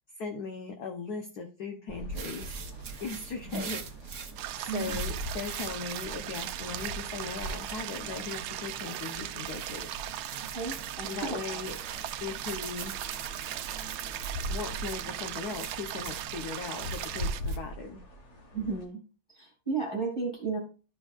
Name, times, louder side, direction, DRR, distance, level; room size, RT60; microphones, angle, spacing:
voice 1, 0.2-2.5 3.0-4.2 4.6-9.9 11.1-11.8 12.2-13.0 14.5-18.0, left 5 dB, 55° left, 4 dB, 1.3 m, -38 dB
sound 1, 1.9-18.8, equal, 40° left, 1.6 m, -42 dB
sound 2, 2.1-17.6, right 6 dB, 55° right, 1.2 m, -44 dB
sound 3, 4.4-17.4, right 13 dB, 90° right, 1.4 m, -38 dB
voice 2, 4.7-5.0 10.5-11.7 18.5-19.0 19.3-20.6, right 4 dB, 15° left, 0 dB, 2.8 m, -34 dB
12.5 x 5.4 x 2.4 m, 0.35 s
omnidirectional pair, 2.2 m